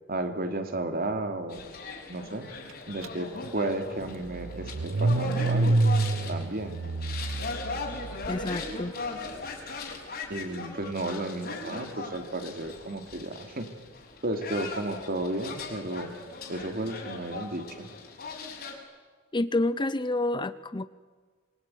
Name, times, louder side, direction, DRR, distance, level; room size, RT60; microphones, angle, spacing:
voice 1, 0.1-1.7 2.1-2.4 2.9-5.9 6.3-6.8 10.3-13.7 14.2-16.1 16.5-17.9, right 2 dB, 50° right, 7 dB, 3.0 m, -33 dB
sound 1, 1.5-18.7, left 3 dB, 50° left, 5.9 m, -39 dB
Car / Engine starting, 3.0-3.1 3.4-8.7, right 2 dB, 80° right, 0.7 m, -28 dB
voice 2, 8.3-8.9 19.3-20.9, left 2 dB, 25° left, 15 dB, 0.7 m, -28 dB
26.5 x 23.0 x 9.4 m, 1.5 s
head